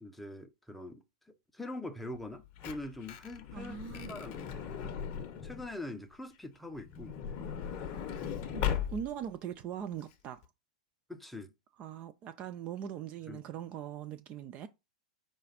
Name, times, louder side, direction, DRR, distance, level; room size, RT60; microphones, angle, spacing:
voice 1, 0.0-4.5 4.7-4.9 5.4-7.2 11.1-11.5 13.3-13.4, left 2 dB, 5° left, 0.6 m, -44 dB
Truck / Door, 2.2-5.7 6.8-9.3 10.0-10.1 10.3-10.4, left 8 dB, 40° left, 0.7 m, -38 dB
voice 2, 3.5-4.1 8.5-10.4 11.8-14.7, right 9 dB, 35° right, 0.4 m, -41 dB
5.1 x 2.4 x 4.0 m
figure-of-eight pair, 100°, 4 cm